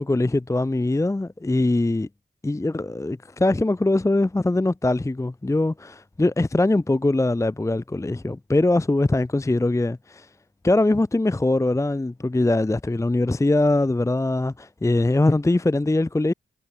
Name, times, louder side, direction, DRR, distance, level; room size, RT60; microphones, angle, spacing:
voice 1, 0.0-2.1 2.4-10.3 10.6-16.3, left 2 dB, 15° left, 0.5 m, -22 dB
wide cardioid pair, 65°, 21 cm